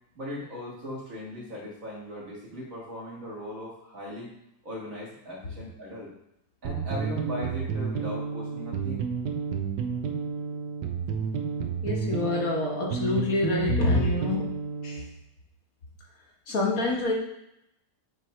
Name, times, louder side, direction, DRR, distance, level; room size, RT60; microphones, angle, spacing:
voice 1, 0.2-4.3 4.6-6.1 6.6-9.1, left 1 dB, 50° right, -5 dB, 2.1 m, -38 dB
sound 1, 6.6-15.1, right 6 dB, 85° right, 1.3 m, -31 dB
voice 2, 11.8-14.6 14.8-15.0 16.5-17.1, left 2 dB, 60° left, -2 dB, 1.5 m, -26 dB
7.3 x 3.2 x 4.3 m, 0.83 s
omnidirectional pair, 1.8 m